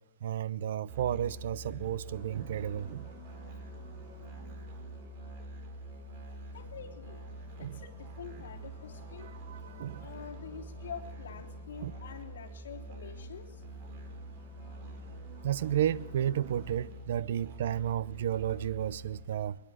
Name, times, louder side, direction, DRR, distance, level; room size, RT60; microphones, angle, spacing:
voice 1, 0.2-3.1 7.6-7.8 9.2-10.1 11.8-11.9 15.4-19.6, right 10 dB, 50° right, 0.6 m, -32 dB
Musical instrument, 0.9-19.3, right 1 dB, 35° right, 3.8 m, -46 dB
sound 1, 2.1-16.7, right 2 dB, 15° right, 5.0 m, -56 dB
voice 2, 6.5-7.2 7.6-9.3 10.0-13.6, left 7 dB, 70° left, 3.3 m, -46 dB
22.0 x 21.0 x 6.4 m
hypercardioid pair, 170°, 0 cm